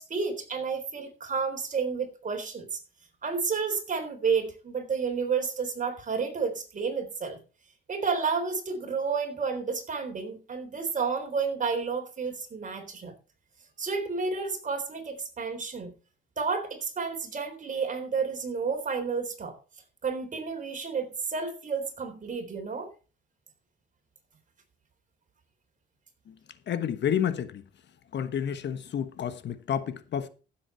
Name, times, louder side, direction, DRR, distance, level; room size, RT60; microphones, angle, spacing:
voice 1, 0.0-2.8 3.2-7.4 7.9-13.1 13.8-15.9 16.4-19.6 20.0-22.9, right 5 dB, 40° right, 3.8 m, -31 dB
voice 2, 26.7-27.6 28.1-30.3, left 9 dB, 60° left, 1.3 m, -30 dB
15.5 x 7.6 x 4.5 m
cardioid pair, 90°, 20 cm